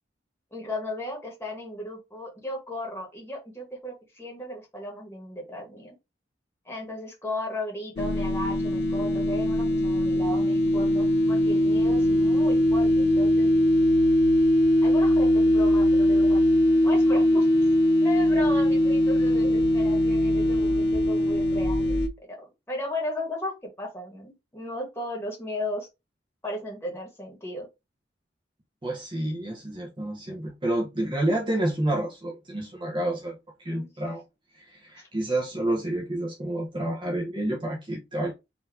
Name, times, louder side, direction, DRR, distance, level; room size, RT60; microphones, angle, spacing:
voice 1, 0.5-5.9 6.7-13.5 14.8-17.5 18.0-22.4 22.7-25.9 26.4-27.7 33.7-33.9 35.0-35.1, left 1 dB, 15° left, 1.7 m, -35 dB
sound 1, 8.0-22.1, left 1 dB, 60° left, 0.6 m, -21 dB
voice 2, 28.8-33.4 33.6-34.2 34.5-38.3, right 1 dB, 25° right, 0.9 m, -29 dB
4.4 x 2.8 x 3.6 m
head